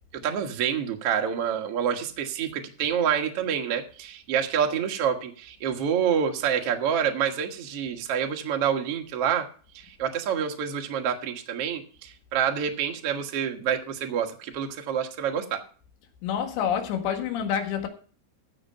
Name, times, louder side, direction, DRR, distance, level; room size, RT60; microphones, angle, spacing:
voice 1, 0.2-9.4 10.0-15.6, right 8 dB, 80° right, 1.3 m, -27 dB
voice 2, 16.2-17.9, left 8 dB, 80° left, 3.9 m, -27 dB
14.5 x 6.6 x 5.5 m
omnidirectional pair, 5.2 m